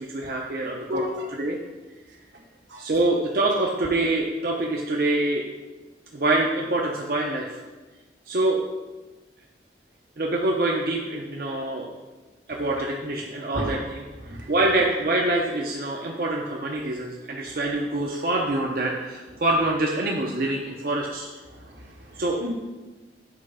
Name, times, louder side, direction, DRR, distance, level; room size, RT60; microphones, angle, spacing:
voice 1, 0.1-1.0 1.4-1.6 2.8-5.5 6.1-7.6 8.3-8.6 10.2-11.9 12.5-14.1 14.5-21.3 22.2-22.4, right 2 dB, 50° right, -1 dB, 0.6 m, -25 dB
voice 2, 0.9-1.2 2.7-2.8 13.5-13.7 14.2-14.5 21.6-22.5, left 1 dB, 85° right, -2 dB, 1.6 m, -33 dB
6.7 x 4.1 x 4.9 m, 1.2 s
head